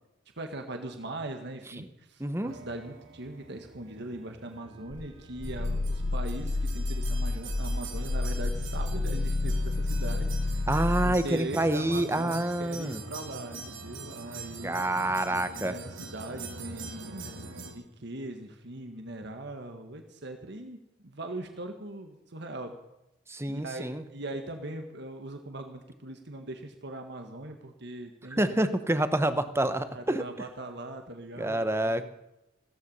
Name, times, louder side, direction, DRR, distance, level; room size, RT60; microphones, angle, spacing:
voice 1, 0.4-10.3 11.0-14.8 15.6-22.8 23.5-28.6 29.9-32.1, right 1 dB, 60° right, 5 dB, 1.7 m, -40 dB
voice 2, 2.2-2.6 10.7-13.0 14.6-15.7 23.3-24.0 28.4-30.2 31.4-32.1, right 1 dB, 15° right, 11 dB, 1.0 m, -27 dB
sound 1, 2.5-17.7, right 4 dB, 75° right, 2.7 m, -44 dB
Growling, 4.9-11.3, left 2 dB, 65° left, 1.0 m, -30 dB
16.0 x 14.5 x 5.5 m, 0.89 s
head